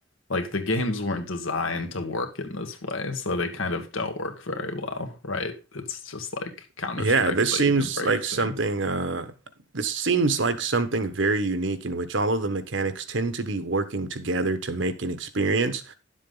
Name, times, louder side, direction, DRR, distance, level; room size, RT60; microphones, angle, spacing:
voice 1, 0.3-8.5, left 3 dB, 85° left, 1.8 m, -30 dB
voice 2, 7.0-9.3 9.7-15.9, right 3 dB, 70° right, 1.1 m, -25 dB
11.0 x 7.5 x 3.9 m
head